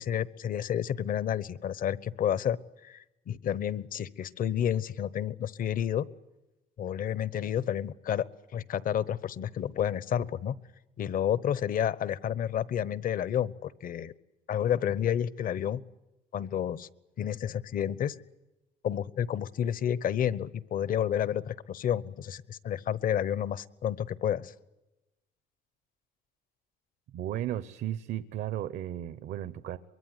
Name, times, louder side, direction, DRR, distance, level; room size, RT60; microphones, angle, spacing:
voice 1, 0.0-2.6 2.8-6.0 6.8-8.3 8.5-10.5 11.0-14.1 14.5-15.8 16.3-16.9 17.2-18.2 18.8-24.5, left 9 dB, 55° left, 18 dB, 1.1 m, -30 dB
voice 2, 27.1-29.8, right 12 dB, 70° right, 14 dB, 1.1 m, -34 dB
24.0 x 22.5 x 9.6 m, 1.0 s
cardioid pair, 110°, 17 cm